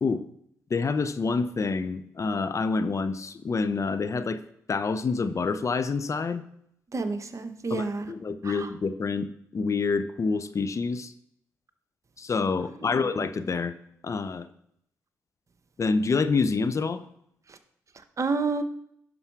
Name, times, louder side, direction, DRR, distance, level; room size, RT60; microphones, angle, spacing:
voice 1, 0.7-4.4 4.7-6.4 7.7-9.3 9.5-11.1 12.2-13.7 14.0-14.5 15.8-17.0, left 4 dB, 40° left, 0.7 m, -27 dB
voice 2, 6.9-8.1 8.4-8.7 12.8-13.1 17.5-17.6 18.2-18.6, right 4 dB, 40° right, 1.1 m, -30 dB
11.0 x 5.5 x 4.7 m
hypercardioid pair, 45°, 8 cm